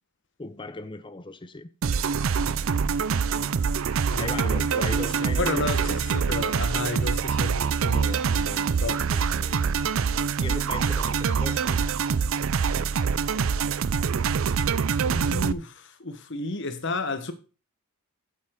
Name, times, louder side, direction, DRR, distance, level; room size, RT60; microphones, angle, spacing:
voice 1, 0.4-1.7 4.1-5.7 9.1-9.7 10.4-11.9, left 2 dB, 20° left, 0.6 m, -38 dB
sound 1, 1.8-15.5, right 6 dB, 60° right, 0.4 m, -25 dB
voice 2, 4.1-9.0 15.1-17.3, left 3 dB, 55° left, 1.2 m, -32 dB
8.9 x 7.5 x 3.8 m
head